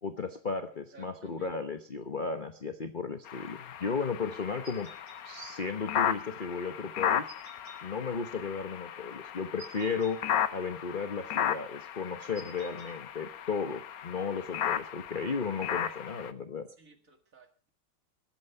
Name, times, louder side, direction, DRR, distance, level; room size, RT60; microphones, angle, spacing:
voice 1, 0.0-4.9 5.2-7.3 7.8-10.2 10.5-16.7, left 5 dB, 35° left, 7 dB, 0.8 m, -35 dB
voice 2, 0.9-1.6 16.8-17.7, right 5 dB, 40° right, 6 dB, 2.2 m, -56 dB
sound 1, 3.3-16.3, left 9 dB, 60° left, 1.0 m, -35 dB
sound 2, 4.6-5.2 7.3-7.8 9.6-10.1 12.3-12.9, right 1 dB, 80° right, 4.1 m, -50 dB
21.0 x 8.6 x 5.6 m, 0.40 s
omnidirectional pair, 2.2 m